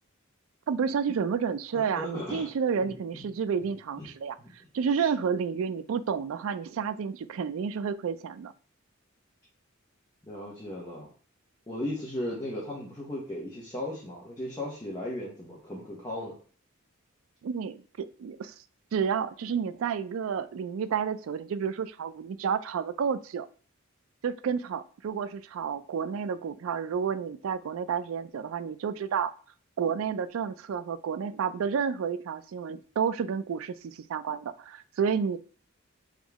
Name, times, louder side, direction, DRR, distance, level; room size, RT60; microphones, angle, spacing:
voice 1, 0.7-4.4 4.7-8.5 17.4-18.5 18.9-23.5 24.2-29.3 29.8-35.4, right 6 dB, 70° right, 14 dB, 0.3 m, -30 dB
voice 2, 1.7-2.5 2.8-2.9 4.0-4.1 4.4-4.5 10.2-11.1 11.7-16.4, left 1 dB, 20° left, -6 dB, 1.0 m, -36 dB
3.6 x 3.0 x 3.5 m, 0.41 s
head